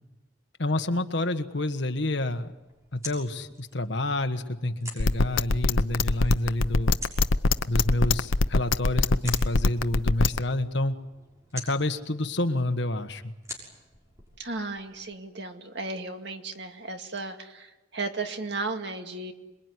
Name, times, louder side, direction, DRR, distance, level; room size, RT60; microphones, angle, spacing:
voice 1, 0.6-2.5 2.9-6.9 7.7-10.9 11.5-13.3, left 1 dB, 60° left, 8 dB, 1.5 m, -28 dB
sound 1, 2.4-15.1, equal, 15° right, 6.5 m, -47 dB
sound 2, 5.0-10.4, left 3 dB, 85° left, 0.9 m, -21 dB
voice 2, 14.4-19.3, right 3 dB, 60° right, 5 dB, 2.2 m, -35 dB
27.0 x 22.0 x 9.8 m, 1.0 s
head